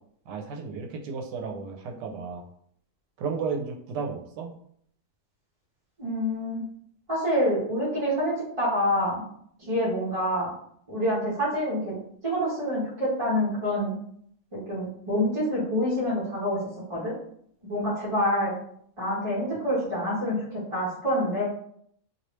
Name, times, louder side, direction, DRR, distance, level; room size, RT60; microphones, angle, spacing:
voice 1, 0.3-2.4 3.2-4.6, right 5 dB, 80° right, 1 dB, 1.2 m, -33 dB
voice 2, 6.0-6.6 7.1-9.2 9.6-10.5 10.9-11.9 12.2-14.0 14.5-16.6 16.9-17.1 17.6-18.5 19.0-21.5, equal, 25° right, -8 dB, 0.7 m, -27 dB
3.0 x 2.8 x 3.0 m, 0.66 s
omnidirectional pair, 1.8 m